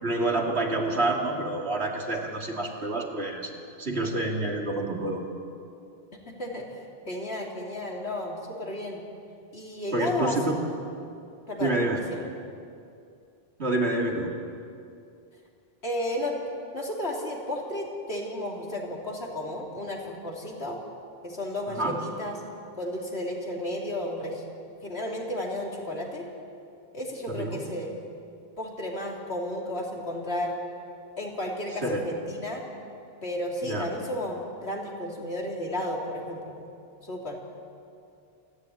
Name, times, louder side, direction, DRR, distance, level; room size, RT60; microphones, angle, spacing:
voice 1, 0.0-3.5 3.8-5.2 9.9-10.6 11.6-12.0 13.6-14.3 21.7-22.0 27.3-27.6 31.8-32.0 33.6-33.9, right 2 dB, 90° right, 0 dB, 2.8 m, -28 dB
voice 2, 6.2-9.0 9.5-10.5 11.5-11.7 12.1-12.2 15.8-16.4 16.7-20.8 21.2-22.4 22.8-24.4 24.8-26.3 26.9-28.0 28.6-30.5 31.2-32.6 33.2-36.5 37.0-37.4, left 1 dB, 80° left, -1 dB, 3.2 m, -33 dB
27.5 x 11.5 x 9.1 m, 2.5 s
omnidirectional pair, 1.1 m